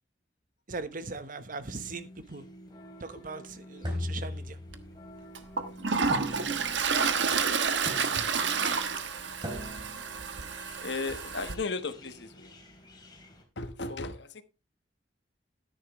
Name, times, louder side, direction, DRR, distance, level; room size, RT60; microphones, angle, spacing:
voice 1, 0.7-2.5 3.0-4.6, right 3 dB, 50° right, 1.1 m, -40 dB
sound 1, 1.7-13.4, equal, 25° left, 3.4 m, -51 dB
sound 2, 3.8-5.0 6.1-6.9 7.9-8.5 9.4-10.1, left 1 dB, 25° right, 3.6 m, -38 dB
Toilet flush, 4.7-4.8 5.4-11.6, right 5 dB, 90° right, 1.2 m, -29 dB
voice 2, 10.8-12.5 13.6-14.4, left 3 dB, 70° left, 1.3 m, -35 dB
13.0 x 10.5 x 3.1 m
head